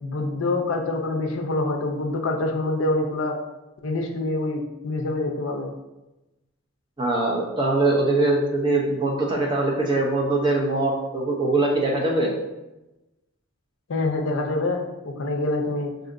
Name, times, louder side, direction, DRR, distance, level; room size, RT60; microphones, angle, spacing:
voice 1, 0.0-3.4 3.8-5.7 13.9-15.9, left 2 dB, 65° left, 2 dB, 0.5 m, -26 dB
voice 2, 7.0-12.3, right 2 dB, 20° right, -2 dB, 0.6 m, -22 dB
4.9 x 2.7 x 2.5 m, 1.0 s
head